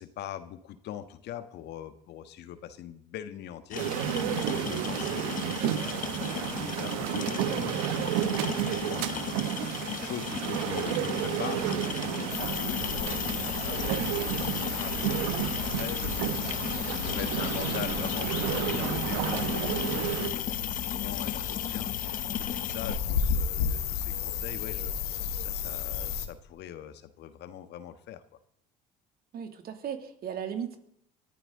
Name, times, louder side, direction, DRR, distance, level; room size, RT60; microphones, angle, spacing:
voice 1, 0.0-4.2 4.4-28.2, left 11 dB, 65° left, 10 dB, 1.6 m, -42 dB
sound 1, 3.7-23.0, left 8 dB, 45° left, 1.2 m, -37 dB
sound 2, 3.7-20.3, right 12 dB, 80° right, 1.3 m, -32 dB
sound 3, 12.3-26.3, left 8 dB, 85° left, 1.7 m, -33 dB
voice 2, 29.3-30.8, right 8 dB, 55° right, 6 dB, 2.7 m, -36 dB
21.5 x 14.0 x 3.9 m, 0.69 s
hypercardioid pair, 70°, 19 cm